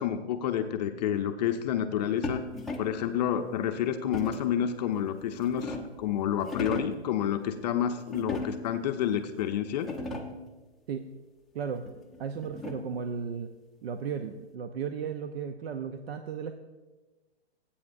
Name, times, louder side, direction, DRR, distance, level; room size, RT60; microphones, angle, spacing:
voice 1, 0.0-2.4 2.8-9.9, left 9 dB, 40° left, 6 dB, 0.6 m, -29 dB
sound 1, 2.2-3.1 4.1-4.6 5.2-6.0 6.4-7.0 8.1-8.8 9.4-9.5 9.7-10.5 11.9-13.0, left 2 dB, ahead, 0.7 m, -37 dB
voice 2, 11.5-11.9 12.2-13.5 13.8-16.5, right 6 dB, 65° right, 7 dB, 0.7 m, -35 dB
18.0 x 8.6 x 2.6 m, 1.2 s
hypercardioid pair, 135°, 33 cm